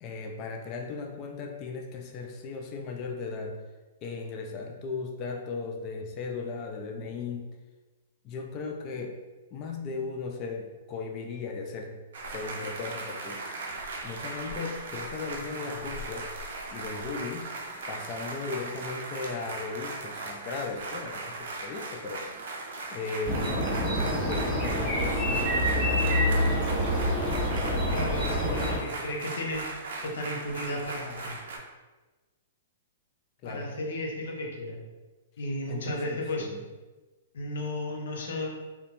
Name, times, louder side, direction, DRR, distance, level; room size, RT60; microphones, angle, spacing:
voice 1, 0.0-3.6 4.0-7.5 8.2-9.2 9.5-12.0 12.3-13.4 14.0-16.3 16.7-17.5 17.9-22.3 22.9-26.2 28.4-28.7 33.4-33.7 35.7-36.6, left 4 dB, 35° left, 2 dB, 0.3 m, -37 dB
sound 1, 12.1-31.6, right 3 dB, 70° right, 0.5 m, -38 dB
sound 2, 23.3-28.8, equal, 5° right, 1.4 m, -26 dB
voice 2, 27.9-31.4 33.4-34.8 35.4-36.5 37.3-38.5, left 1 dB, 75° left, -1 dB, 0.6 m, -34 dB
2.8 x 2.2 x 2.5 m, 1.2 s
hypercardioid pair, 125°, 0 cm